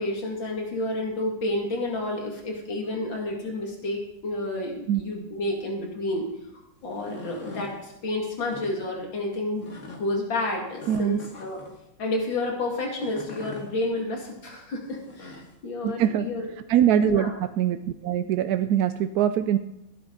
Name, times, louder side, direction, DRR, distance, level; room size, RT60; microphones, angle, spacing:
voice 1, 0.0-6.3 6.8-11.6 12.0-16.5 17.0-17.3, left 2 dB, 85° left, 0 dB, 3.0 m, -30 dB
sound 1, 6.8-7.8 8.4-8.7 9.6-10.0 10.8-11.8 12.9-13.7 14.9-15.5, left 3 dB, 40° left, 2.1 m, -43 dB
voice 2, 10.9-11.2 15.8-16.3 16.7-17.3 17.6-19.6, right 10 dB, 70° right, 10 dB, 0.9 m, -23 dB
17.0 x 10.5 x 3.9 m, 0.86 s
omnidirectional pair, 2.0 m